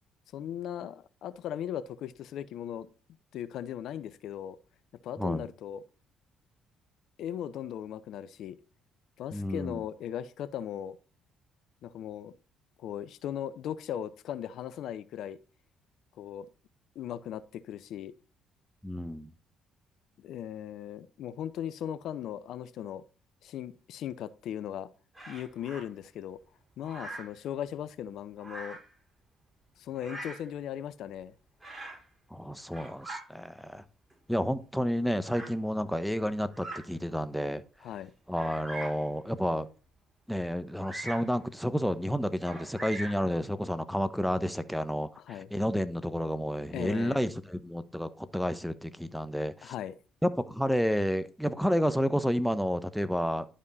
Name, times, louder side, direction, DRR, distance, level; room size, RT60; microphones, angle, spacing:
voice 1, 0.3-2.9 3.3-4.6 5.0-5.8 7.2-8.6 9.2-11.0 11.8-12.3 12.8-15.4 16.2-16.5 17.0-18.1 20.2-23.0 23.4-24.9 25.3-26.4 26.8-28.8 29.8-31.3 37.8-38.1 45.2-45.5 46.7-47.2 49.6-50.0, left 10 dB, 70° left, 0.6 m, -38 dB
voice 2, 9.3-9.8 18.8-19.3 32.3-33.8 34.3-37.6 38.3-39.7 40.3-49.7 50.2-53.4, equal, ahead, 1.0 m, -30 dB
Bird vocalization bird call bird song, 25.1-25.8 26.8-27.4 28.4-28.9 30.0-30.5 31.6-32.0 32.6-33.2 34.1-34.2 35.2-35.5 36.5-36.9 37.5-37.6 38.3-39.1 40.8-41.3 42.4-43.3, right 2 dB, 15° right, 4.9 m, -42 dB
11.5 x 5.2 x 4.1 m
hypercardioid pair, 60°, 0 cm